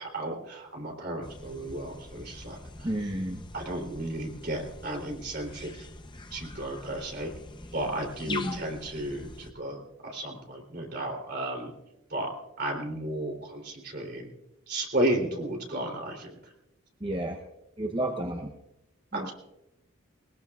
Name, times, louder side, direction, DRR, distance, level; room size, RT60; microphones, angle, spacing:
voice 1, 0.0-2.9 3.5-5.9 6.3-7.3 7.7-11.7 12.1-12.3 12.6-14.3 14.7-16.4 19.1-19.3, right 1 dB, 45° right, 2 dB, 3.3 m, -33 dB
sound 1, 1.2-9.5, left 3 dB, 20° left, 0.7 m, -44 dB
voice 2, 2.8-3.4 8.3-8.6 17.0-17.4 17.8-18.5 19.1-19.3, right 1 dB, 25° right, 3 dB, 0.8 m, -31 dB
21.5 x 20.0 x 2.4 m, 0.91 s
head